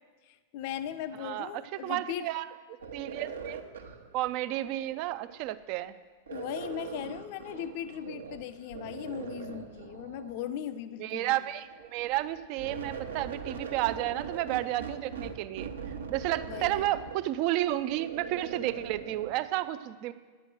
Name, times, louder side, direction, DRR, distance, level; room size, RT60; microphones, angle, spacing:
voice 1, 0.3-2.3 6.3-11.4 16.5-17.0, left 10 dB, 50° left, 13 dB, 0.5 m, -38 dB
voice 2, 1.2-2.4 2.9-3.6 4.1-5.9 11.0-15.7 16.1-20.1, right 15 dB, 45° right, 14 dB, 0.5 m, -32 dB
sound 1, 2.8-5.6 6.3-8.4 8.7-10.5 11.5-19.3, right 6 dB, 70° right, 1.0 m, -41 dB
9.8 x 7.6 x 7.6 m, 1.4 s
figure-of-eight pair, 90°, 0 cm